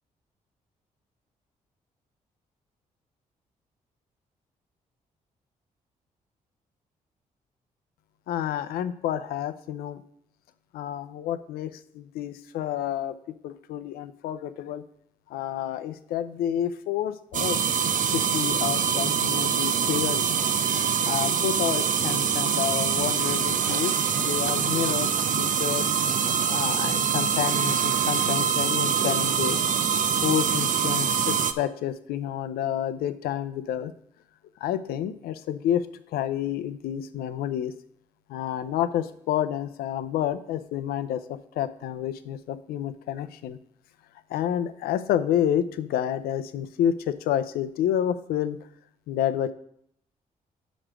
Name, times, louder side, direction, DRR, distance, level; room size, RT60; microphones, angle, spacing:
voice 1, 8.3-10.0 10.7-14.8 15.3-17.6 18.1-20.4 21.0-25.1 25.4-25.9 26.5-29.6 30.2-33.9 34.6-35.8 36.1-37.7 38.3-43.6 44.3-48.6 49.1-49.5, left 10 dB, 85° left, 11 dB, 0.5 m, -29 dB
sound 1, 17.3-31.5, right 7 dB, 60° right, 0.6 m, -24 dB
6.2 x 5.0 x 6.0 m, 0.68 s
supercardioid pair, 60°, 15 cm